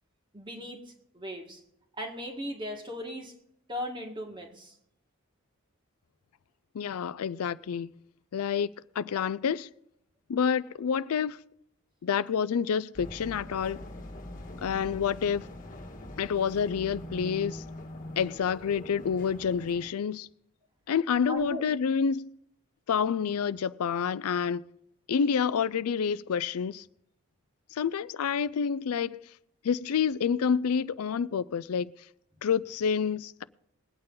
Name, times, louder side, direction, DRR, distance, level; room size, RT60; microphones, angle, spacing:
voice 1, 0.3-0.8 1.1-1.6 1.9-3.3 3.7-4.8 21.3-21.7, equal, 20° right, 1.8 m, -37 dB
voice 2, 6.7-7.9 8.3-9.7 10.3-11.4 12.0-13.8 14.6-15.4 16.2-17.6 18.2-20.3 20.9-22.4 22.9-24.6 25.1-26.8 27.7-29.2 29.6-31.9 32.4-33.4, left 7 dB, 85° left, 0.4 m, -28 dB
sound 1, 12.9-19.9, left 1 dB, 35° left, 1.6 m, -43 dB
21.0 x 8.8 x 3.9 m
head